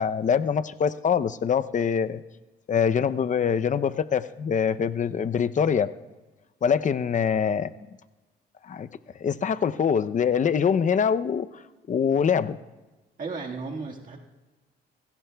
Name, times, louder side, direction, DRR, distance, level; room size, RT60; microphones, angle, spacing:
voice 1, 0.0-2.2 2.7-5.9 6.6-7.7 8.7-8.9 9.2-11.5 11.9-12.6, left 7 dB, 40° left, 13 dB, 0.6 m, -24 dB
voice 2, 13.2-14.2, right 4 dB, 45° right, 0 dB, 1.7 m, -34 dB
27.5 x 17.0 x 2.3 m, 1.2 s
cardioid pair, 90°, 20 cm